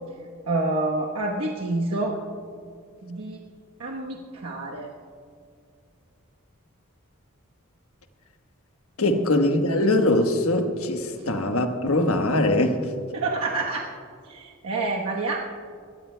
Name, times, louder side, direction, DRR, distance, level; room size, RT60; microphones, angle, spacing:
voice 1, 0.5-2.2 3.0-3.4 3.8-4.9 9.1-9.3 13.1-13.9 14.2-15.4, right 2 dB, 85° right, -2 dB, 1.1 m, -28 dB
voice 2, 9.0-12.8, left 1 dB, 80° left, 5 dB, 1.2 m, -22 dB
22.5 x 18.0 x 2.2 m, 2.2 s
head